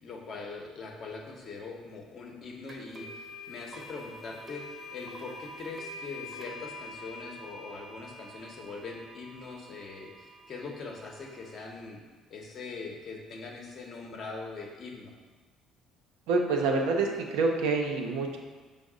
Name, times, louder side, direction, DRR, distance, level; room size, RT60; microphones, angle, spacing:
voice 1, 0.0-4.6 4.9-12.0 12.3-15.1, left 4 dB, 50° left, 0 dB, 0.8 m, -42 dB
sound 1, 2.7-11.5, left 1 dB, 35° right, 0.8 m, -46 dB
voice 2, 16.3-18.4, right 3 dB, 85° right, 1 dB, 0.5 m, -27 dB
5.2 x 2.0 x 4.8 m, 1.4 s
supercardioid pair, 85°, 0 cm